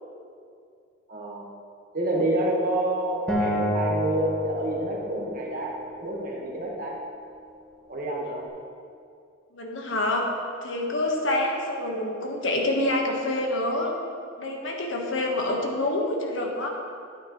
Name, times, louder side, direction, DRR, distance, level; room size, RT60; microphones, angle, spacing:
voice 1, 1.1-1.5 1.9-7.0 7.9-8.4, right 1 dB, 45° right, -2 dB, 1.5 m, -28 dB
Acoustic guitar, 3.3-6.5, equal, 5° left, 1.5 m, -29 dB
voice 2, 9.5-10.3 10.6-13.9 14.4-16.7, left 1 dB, 70° left, 1 dB, 1.3 m, -27 dB
11.0 x 9.2 x 3.1 m, 2.4 s
head